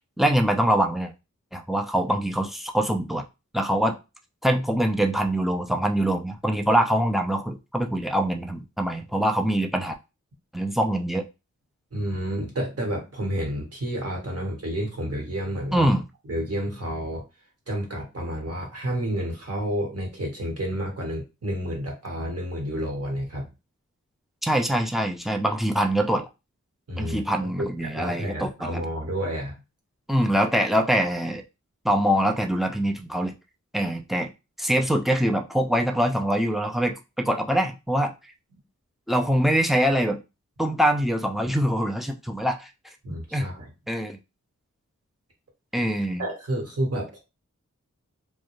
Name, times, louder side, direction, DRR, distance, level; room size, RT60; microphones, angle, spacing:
voice 1, 0.2-1.1 1.5-3.2 3.5-4.0 4.4-9.9 10.5-11.2 15.7-16.0 24.4-26.3 27.0-28.8 30.1-31.4 31.8-33.3 33.7-34.3 34.6-38.1 39.1-40.2 40.6-42.7 43.3-43.5 43.9-44.2 45.7-46.2, right 1 dB, ahead, 5 dB, 0.4 m, -24 dB
voice 2, 11.9-15.9 16.3-17.2 17.7-23.5 26.9-29.5 43.0-43.7 46.2-47.2, equal, 50° right, 0 dB, 1.1 m, -30 dB
2.3 x 2.1 x 3.0 m, 0.27 s
wide cardioid pair, 55°, 30 cm